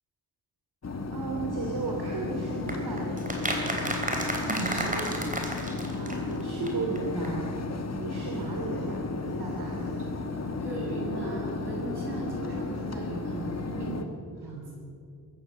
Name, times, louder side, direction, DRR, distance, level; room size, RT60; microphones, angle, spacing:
sound 1, 0.8-14.0, left 3 dB, 40° left, 1.5 m, -34 dB
voice 1, 1.1-3.6 5.9-7.6 8.0-10.1 14.4-14.5, right 3 dB, 75° right, -1 dB, 3.1 m, -35 dB
sound 2, 2.7-6.4 6.7-6.8 7.0-7.1 7.2-7.3, right 1 dB, 20° right, 3.4 m, -32 dB
voice 2, 4.4-5.0 10.6-13.9 14.4-14.6, right 2 dB, 90° right, -2 dB, 7.2 m, -37 dB
22.0 x 17.0 x 6.9 m, 2.6 s
wide cardioid pair, 160°, 39 cm